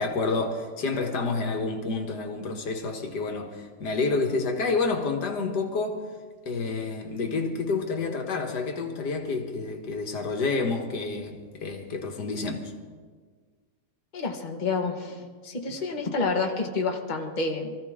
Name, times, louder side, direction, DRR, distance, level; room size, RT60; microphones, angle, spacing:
voice 1, 0.0-6.0 6.4-12.7, left 3 dB, 80° left, 2.0 m, -29 dB
voice 2, 14.1-17.8, left 4 dB, 30° left, 1.5 m, -29 dB
24.5 x 14.5 x 3.7 m
omnidirectional pair, 1.8 m